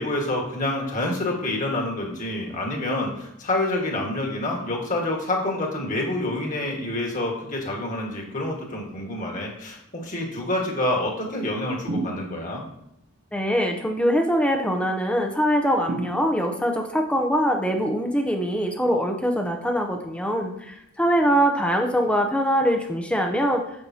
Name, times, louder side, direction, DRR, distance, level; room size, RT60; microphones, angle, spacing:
voice 1, 0.0-12.7, left 1 dB, 35° left, 0 dB, 1.5 m, -27 dB
sound 1, 11.9-12.7 15.9-16.8, right 2 dB, 45° right, 0.5 m, -32 dB
voice 2, 13.3-23.6, equal, 5° left, 3 dB, 0.6 m, -23 dB
8.9 x 7.0 x 2.8 m, 0.78 s
head